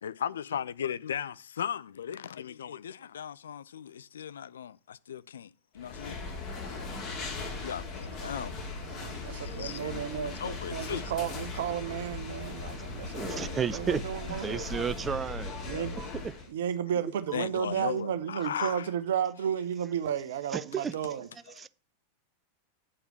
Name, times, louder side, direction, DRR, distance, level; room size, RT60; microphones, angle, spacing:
voice 1, 0.0-6.2 7.5-8.7 9.3-10.0 10.4-11.1 15.7-15.9 16.9-18.9 21.6-21.7, left 8 dB, 65° left, 0.4 m, -37 dB
sound 1, 5.8-16.5, left 3 dB, 35° left, 2.4 m, -38 dB
voice 2, 8.1-8.5 8.9-14.8 15.7-16.0 16.5-21.3, right 9 dB, 60° right, 0.9 m, -33 dB
voice 3, 13.2-14.0 14.3-15.6 16.0-16.1 17.3-17.4 18.6-18.7 20.5-20.9 21.6-21.7, right 7 dB, 20° right, 0.4 m, -32 dB
8.5 x 5.0 x 6.1 m
figure-of-eight pair, 90°, 0 cm